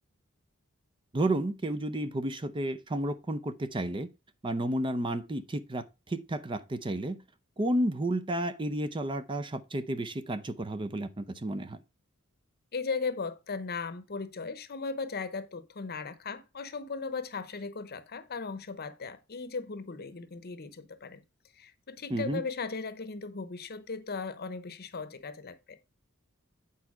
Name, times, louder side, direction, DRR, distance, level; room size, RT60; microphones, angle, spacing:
voice 1, 1.1-4.1 4.4-7.2 7.6-11.8 22.1-22.4, right 1 dB, 25° right, 0.5 m, -31 dB
voice 2, 12.7-21.2 21.5-25.8, left 4 dB, 50° left, 0.8 m, -37 dB
8.5 x 4.5 x 4.8 m
head